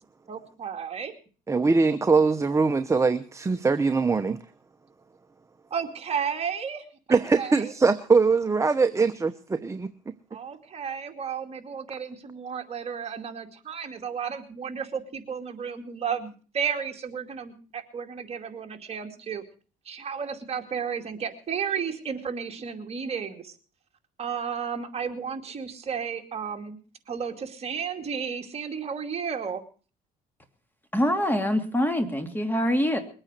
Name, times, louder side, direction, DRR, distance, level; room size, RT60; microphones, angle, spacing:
voice 1, 0.3-1.1 5.7-7.7 10.3-19.4 19.8-23.6 24.2-26.8 27.1-29.6, right 7 dB, 35° right, 4 dB, 2.5 m, -33 dB
voice 2, 1.5-4.4 7.1-9.9, right 4 dB, 15° right, 10 dB, 0.8 m, -22 dB
voice 3, 30.9-33.0, equal, 10° left, 7 dB, 2.6 m, -24 dB
22.0 x 8.9 x 6.7 m, 0.40 s
cardioid pair, 110°, 17 cm